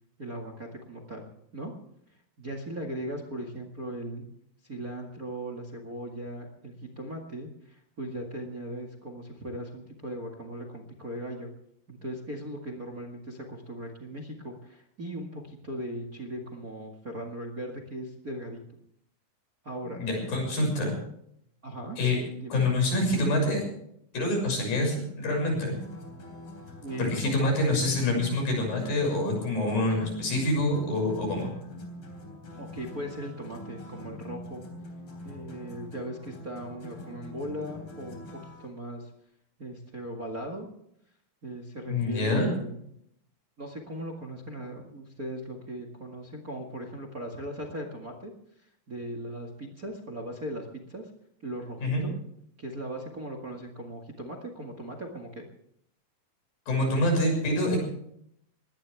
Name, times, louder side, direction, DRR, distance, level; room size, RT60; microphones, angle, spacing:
voice 1, 0.2-1.2 1.5-1.7 2.4-4.3 4.6-11.5 11.9-18.6 19.6-20.0 21.6-22.0 22.4-22.6 26.8-28.1 32.6-34.7 35.2-39.1 39.6-40.7 41.4-42.9 43.6-48.3 48.6-51.1 51.4-52.1 52.6-55.5, right 1 dB, 30° right, 4 dB, 1.8 m, -38 dB
voice 2, 20.0-21.0 22.0-22.2 22.5-23.6 24.1-25.7 27.0-31.5 41.9-42.5 51.8-52.0 56.7-57.8, left 1 dB, 75° left, 1 dB, 8.3 m, -26 dB
sound 1, 25.6-38.7, left 1 dB, 35° left, 4.2 m, -44 dB
21.0 x 18.0 x 3.5 m, 0.72 s
omnidirectional pair, 4.1 m